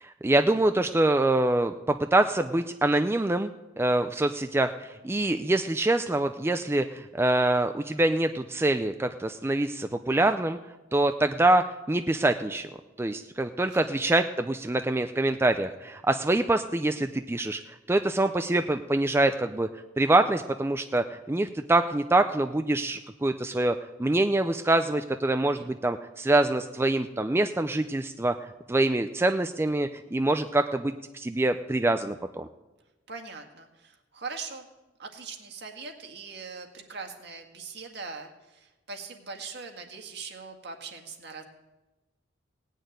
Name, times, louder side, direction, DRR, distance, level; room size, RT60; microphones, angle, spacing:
voice 1, 0.0-3.5 3.8-10.6 10.9-12.7 13.0-17.6 17.9-19.7 20.0-28.3 28.7-32.5, right 2 dB, 15° right, 8 dB, 0.4 m, -25 dB
voice 2, 25.4-25.7 33.1-34.7 35.0-41.4, right 4 dB, 60° right, 4 dB, 1.8 m, -41 dB
18.0 x 6.5 x 9.2 m, 1.1 s
head